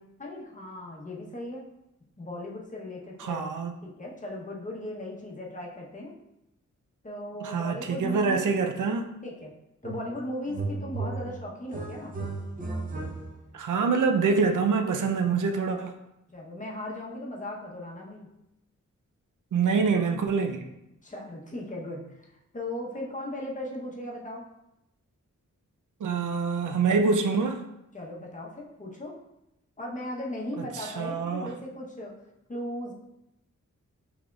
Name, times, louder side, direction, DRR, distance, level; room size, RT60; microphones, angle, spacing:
voice 1, 0.2-1.6 2.2-3.4 3.8-6.1 7.0-8.6 9.2-9.5 9.8-12.2 16.3-18.3 21.0-22.2 22.5-24.5 27.9-29.2 29.8-32.1 32.5-32.9, left 1 dB, 25° left, -2 dB, 0.8 m, -37 dB
voice 2, 3.2-3.7 7.4-9.1 13.5-15.9 19.5-20.6 26.0-27.6 30.8-31.5, right 5 dB, 80° right, 5 dB, 0.5 m, -25 dB
sound 1, 9.8-10.2 10.5-13.6, right 3 dB, 25° right, 0.7 m, -35 dB
6.0 x 3.4 x 2.3 m, 0.87 s
wide cardioid pair, 130°, 31 cm